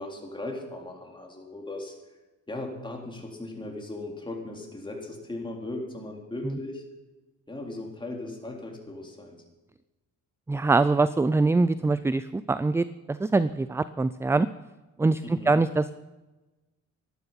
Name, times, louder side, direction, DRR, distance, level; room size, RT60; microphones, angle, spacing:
voice 1, 0.0-2.0 2.5-6.8 7.5-9.4 15.2-15.5, left 2 dB, 15° left, 0 dB, 3.8 m, -37 dB
voice 2, 10.5-14.5 15.0-15.9, right 3 dB, 10° right, 15 dB, 0.3 m, -24 dB
13.5 x 11.5 x 5.6 m, 1.1 s
cardioid pair, 90°, 30 cm